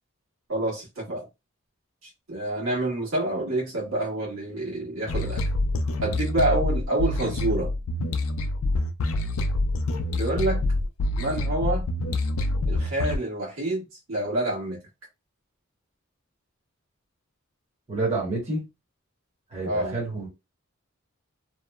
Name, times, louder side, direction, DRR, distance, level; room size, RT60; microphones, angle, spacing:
voice 1, 0.5-1.3 2.3-5.4 6.0-7.7 10.1-10.6 11.2-11.8 12.7-13.8 14.1-14.8 19.6-19.9, right 1 dB, 75° right, 1.3 m, -27 dB
sound 1, 5.1-13.2, left 2 dB, 80° left, 0.4 m, -26 dB
voice 2, 17.9-18.6 19.5-20.3, right 2 dB, 30° right, 1.0 m, -28 dB
2.9 x 2.0 x 2.3 m
head